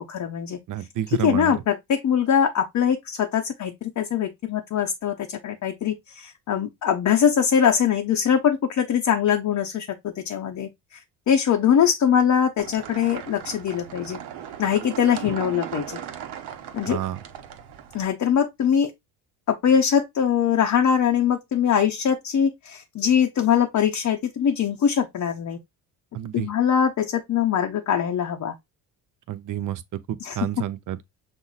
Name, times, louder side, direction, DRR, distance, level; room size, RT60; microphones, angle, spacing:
voice 1, 0.0-0.6 1.2-11.0 11.3-14.2 14.6-16.0 16.7-17.0 17.9-18.9 19.5-25.6 26.3-28.5 30.2-30.4, left 8 dB, 45° left, 0.7 m, -22 dB
voice 2, 0.7-1.6 16.9-17.2 26.1-26.5 29.3-31.0, right 11 dB, 50° right, 0.6 m, -30 dB
sound 1, 12.6-18.0, right 9 dB, 70° right, 1.0 m, -38 dB
6.1 x 2.0 x 3.9 m
cardioid pair, 100°, 41 cm